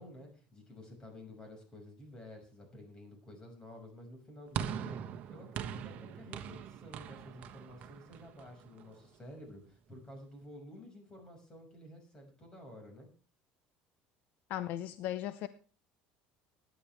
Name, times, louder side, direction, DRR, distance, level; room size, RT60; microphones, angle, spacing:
voice 1, 0.0-5.0 5.3-13.1, left 1 dB, 20° left, 6.1 m, -51 dB
sound 1, 4.5-9.0, right 8 dB, 50° right, 1.2 m, -41 dB
voice 2, 14.5-15.5, left 12 dB, 60° left, 0.7 m, -37 dB
20.5 x 10.5 x 3.5 m
cardioid pair, 140°, 3 cm